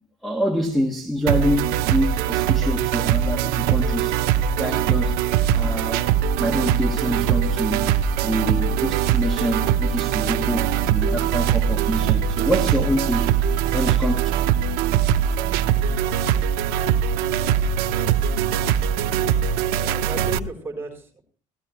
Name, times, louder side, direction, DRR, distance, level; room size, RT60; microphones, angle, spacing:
voice 1, 0.2-4.2 4.6-5.2 5.5-6.1 6.4-7.9 8.2-14.3, equal, ahead, 1.6 m, -26 dB
sound 1, 1.3-20.4, right 9 dB, 85° right, 0.9 m, -22 dB
voice 2, 19.7-21.2, right 3 dB, 15° right, 4.8 m, -35 dB
17.5 x 13.5 x 3.0 m
cardioid pair, 160°, 15 cm